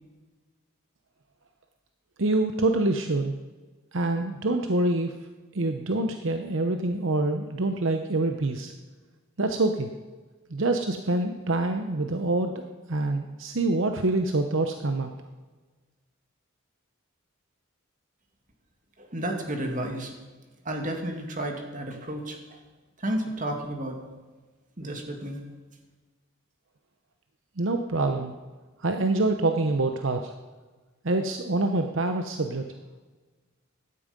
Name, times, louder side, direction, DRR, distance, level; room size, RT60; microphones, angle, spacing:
voice 1, 2.2-3.3 3.9-5.2 5.5-8.7 9.4-9.9 10.5-15.1 27.6-28.3 28.8-30.3 31.0-32.7, right 2 dB, 65° right, 6 dB, 0.9 m, -26 dB
voice 2, 19.0-20.1 20.6-22.6 23.0-24.0 24.8-25.4, right 1 dB, 40° right, 3 dB, 2.4 m, -32 dB
16.5 x 12.5 x 5.3 m, 1.3 s
head